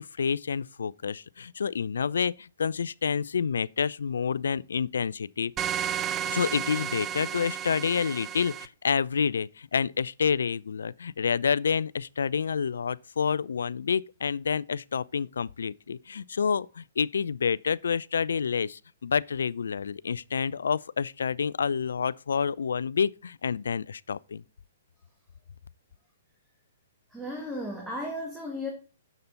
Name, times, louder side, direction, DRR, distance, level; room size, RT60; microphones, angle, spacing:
voice 1, 0.0-5.5 6.2-24.4, left 6 dB, 75° left, 0.3 m, -28 dB
sound 1, 5.6-8.7, right 9 dB, 25° right, 0.4 m, -32 dB
voice 2, 27.1-28.7, left 1 dB, ahead, 1.8 m, -35 dB
6.9 x 6.7 x 3.9 m
hypercardioid pair, 125°, 0 cm